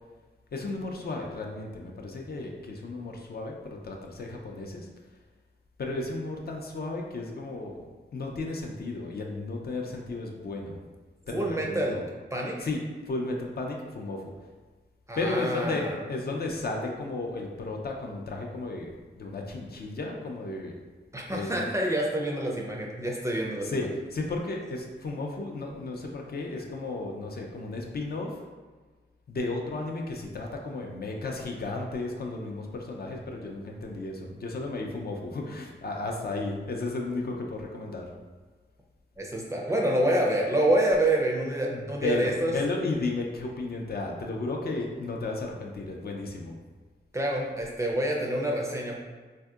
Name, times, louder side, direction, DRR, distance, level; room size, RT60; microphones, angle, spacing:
voice 1, 0.5-4.9 5.8-7.8 8.1-10.8 11.3-12.0 12.6-12.8 13.1-14.2 15.2-20.7 21.3-21.7 23.6-28.4 29.3-38.0 41.7-46.6, left 2 dB, 55° left, 1 dB, 0.4 m, -34 dB
voice 2, 11.3-12.0 12.3-12.6 15.1-15.9 21.1-23.7 39.2-42.5 47.1-48.9, right 1 dB, 15° right, -2 dB, 0.4 m, -27 dB
3.4 x 2.7 x 2.3 m, 1.4 s
wide cardioid pair, 115°, 19 cm